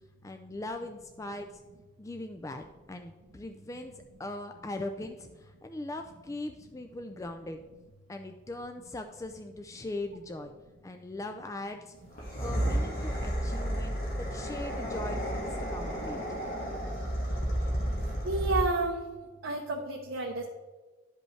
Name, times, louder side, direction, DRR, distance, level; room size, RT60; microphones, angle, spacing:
voice 1, 0.2-1.5 2.0-3.9 4.2-7.6 8.1-10.5 10.8-11.9 12.4-16.2, left 2 dB, 15° left, 6 dB, 0.3 m, -40 dB
sound 1, 12.1-18.9, equal, 45° left, 1.6 m, -32 dB
voice 2, 18.2-19.0 19.4-20.4, right 3 dB, 70° right, 0 dB, 0.8 m, -30 dB
11.5 x 5.3 x 3.2 m, 1.2 s
head